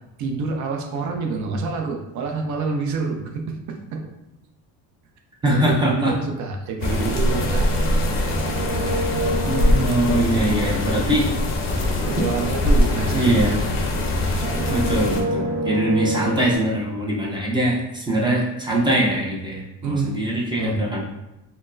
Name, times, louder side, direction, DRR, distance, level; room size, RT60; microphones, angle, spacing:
voice 1, 0.2-4.1 5.5-9.0 10.1-10.9 12.1-13.6 14.2-14.5 19.8-20.2 20.5-20.8, right 4 dB, 55° right, 2 dB, 0.6 m, -28 dB
voice 2, 5.4-6.1 9.5-11.3 13.1-13.6 14.7-21.0, right 1 dB, 15° right, -4 dB, 0.4 m, -22 dB
sound 1, 6.8-15.2, left 1 dB, 40° left, 0.5 m, -22 dB
sound 2, 7.3-14.0 14.3-16.6, right 1 dB, 40° right, 1.4 m, -29 dB
4.3 x 2.0 x 2.5 m, 0.91 s
cardioid pair, 155°, 34 cm